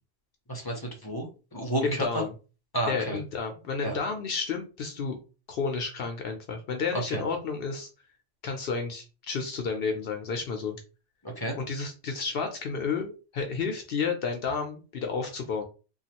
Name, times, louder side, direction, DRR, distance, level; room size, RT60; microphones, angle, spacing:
voice 1, 0.5-2.1 2.7-3.2 3.8-4.0 6.9-7.2 11.2-11.5, right 1 dB, 25° left, 2 dB, 0.6 m, -31 dB
voice 2, 1.8-2.3 2.9-5.2 5.5-7.9 8.4-10.8 11.6-15.6, left 5 dB, 70° left, 5 dB, 0.8 m, -31 dB
3.1 x 2.4 x 2.8 m, 0.33 s
omnidirectional pair, 1.0 m